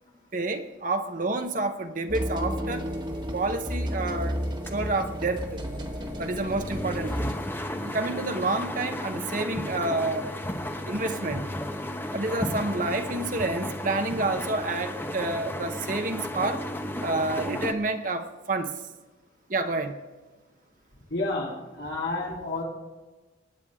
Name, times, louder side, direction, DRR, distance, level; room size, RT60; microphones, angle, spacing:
voice 1, 0.3-2.9 3.3-4.4 4.7-5.6 6.2-7.4 7.8-10.3 10.9-11.5 12.1-16.6 17.0-18.7 19.5-19.9, right 2 dB, 45° right, 5 dB, 1.0 m, -29 dB
sound 1, 2.1-7.3, equal, 25° right, 1.5 m, -32 dB
sound 2, 2.9-17.7, left 1 dB, 10° left, 0.9 m, -34 dB
voice 2, 21.1-22.6, left 2 dB, 75° left, -4 dB, 3.2 m, -30 dB
24.5 x 9.5 x 3.7 m, 1.3 s
head